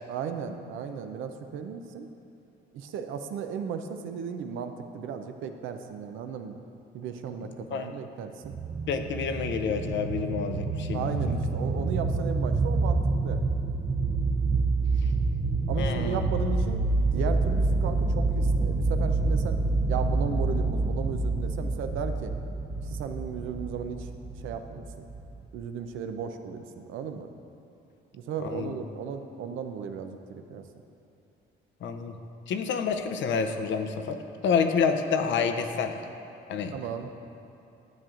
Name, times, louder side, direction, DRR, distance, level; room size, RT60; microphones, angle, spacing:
voice 1, 0.1-2.1 2.7-6.6 6.9-8.5 10.9-13.4 15.7-19.6 19.9-22.3 22.8-24.9 25.5-27.3 28.1-30.7 36.7-37.1, right 6 dB, 85° right, 7 dB, 0.5 m, -35 dB
voice 2, 7.4-7.9 8.9-11.1 15.8-16.3 28.4-28.8 31.8-32.1 32.5-34.2 34.4-36.0 36.5-36.7, left 6 dB, 70° left, 7 dB, 0.6 m, -28 dB
sound 1, 8.4-25.5, right 3 dB, 25° right, 0.5 m, -27 dB
11.0 x 7.4 x 2.5 m, 2.8 s
cardioid pair, 90°, 20 cm